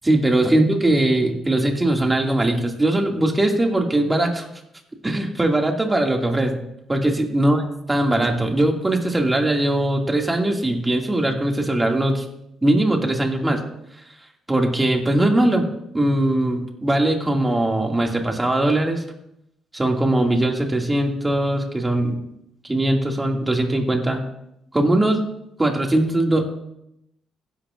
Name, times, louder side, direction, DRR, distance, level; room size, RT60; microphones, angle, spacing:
voice 1, 0.0-4.5 5.0-6.6 6.9-7.6 7.9-12.2 12.6-13.6 14.5-15.7 15.9-19.0 19.7-22.2 22.6-24.2 24.7-25.2 25.6-26.4, right 1 dB, 15° right, 1 dB, 2.2 m, -20 dB
15.5 x 11.5 x 2.5 m, 0.81 s
cardioid pair, 90°, 0 cm